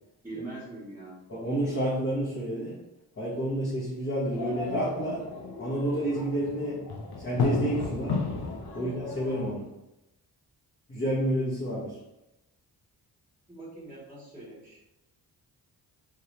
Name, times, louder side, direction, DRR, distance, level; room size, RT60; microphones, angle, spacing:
voice 1, 0.2-1.2 8.7-8.9 13.5-14.8, right 2 dB, 5° right, -10 dB, 1.2 m, -42 dB
voice 2, 1.3-2.8 3.2-5.3 5.6-6.8 7.2-8.2 8.7-9.7 10.9-12.0, right 1 dB, 30° left, -8 dB, 1.5 m, -30 dB
sound 1, 4.3-9.5, left 3 dB, 60° left, 0.9 m, -33 dB
3.6 x 2.9 x 3.3 m, 0.93 s
cardioid pair, 55°, 43 cm